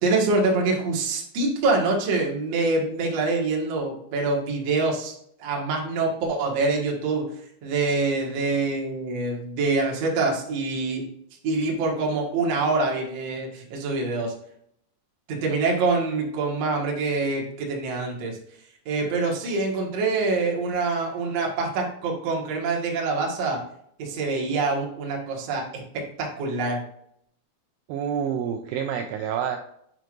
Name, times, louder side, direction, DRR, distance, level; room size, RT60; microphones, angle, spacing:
voice 1, 0.0-5.1 5.4-11.1 11.4-14.3 15.3-18.4 18.8-23.6 24.0-26.8, right 3 dB, 65° right, -1 dB, 1.6 m, -25 dB
voice 2, 27.9-29.6, right 8 dB, 85° right, 4 dB, 2.4 m, -28 dB
7.8 x 6.0 x 2.5 m, 0.71 s
omnidirectional pair, 5.3 m